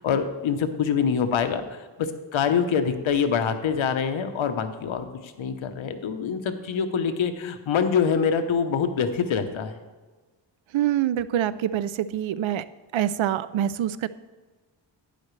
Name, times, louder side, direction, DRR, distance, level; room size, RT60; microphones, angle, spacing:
voice 1, 0.0-9.8, left 6 dB, 85° left, 8 dB, 0.9 m, -25 dB
voice 2, 10.7-12.6 12.9-14.1, right 11 dB, 85° right, 16 dB, 0.6 m, -25 dB
11.5 x 9.8 x 3.2 m, 1.3 s
wide cardioid pair, 105°, 46 cm